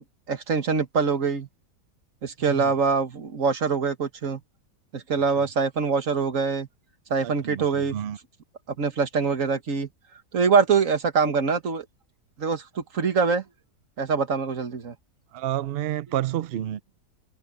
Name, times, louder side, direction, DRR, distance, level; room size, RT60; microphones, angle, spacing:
voice 1, 0.3-1.5 2.2-4.4 4.9-6.7 7.1-8.0 8.8-9.9 10.3-11.9 12.4-13.4 14.0-15.0, right 5 dB, 50° right, 1.9 m, -24 dB
voice 2, 2.4-2.7 5.4-5.5 7.2-8.2 15.3-16.8, right 12 dB, 85° right, 0.5 m, -30 dB
omnidirectional pair, 1.8 m